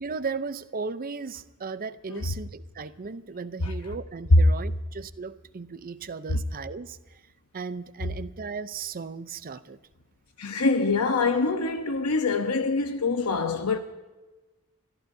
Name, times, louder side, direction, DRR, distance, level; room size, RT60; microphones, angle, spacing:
voice 1, 0.0-7.0 7.5-9.8, right 4 dB, 40° right, 0.6 m, -36 dB
voice 2, 10.4-13.8, left 4 dB, 80° left, 0.9 m, -25 dB
30.0 x 14.0 x 2.7 m
head